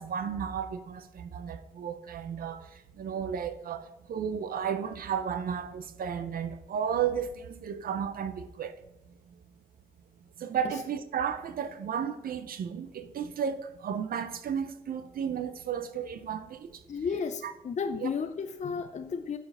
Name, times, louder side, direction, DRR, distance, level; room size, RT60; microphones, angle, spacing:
voice 1, 0.0-2.6 3.0-8.7 10.4-16.8 17.4-17.5 18.0-18.1, right 8 dB, 80° right, 0.5 m, -33 dB
voice 2, 16.9-19.4, left 5 dB, 50° left, 0.5 m, -33 dB
7.5 x 4.9 x 5.4 m
cardioid pair, 55°, 15 cm